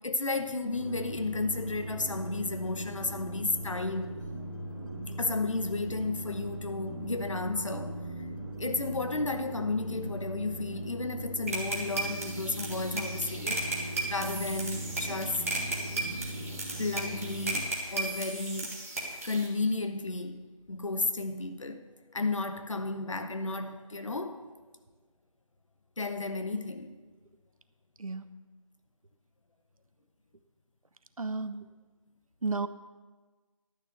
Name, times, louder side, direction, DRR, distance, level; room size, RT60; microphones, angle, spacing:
voice 1, 0.0-4.2 5.2-8.0 8.6-15.5 16.8-18.8 19.2-21.8 22.1-24.4 26.0-27.0, left 3 dB, 65° left, 1.0 m, -33 dB
sound 1, 0.7-17.6, right 1 dB, 45° right, 2.0 m, -40 dB
sound 2, 11.5-19.5, right 2 dB, 25° right, 1.4 m, -35 dB
voice 2, 28.0-28.3 31.2-31.7 32.4-32.7, right 3 dB, 85° right, 0.8 m, -33 dB
11.5 x 6.5 x 6.7 m
figure-of-eight pair, 175°, 18 cm